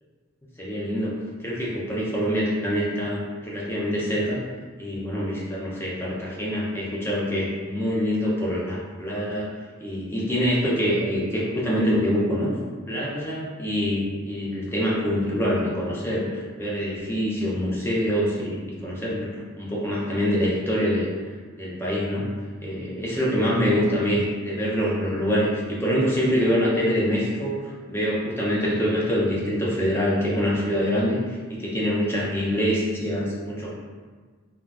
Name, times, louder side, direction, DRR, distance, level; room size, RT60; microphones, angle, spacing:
voice 1, 0.6-1.1 1.4-4.4 4.8-9.5 9.8-12.6 12.9-21.1 21.6-22.3 22.6-33.7, equal, 10° left, -5 dB, 0.5 m, -25 dB
3.7 x 2.3 x 2.3 m, 1.5 s
head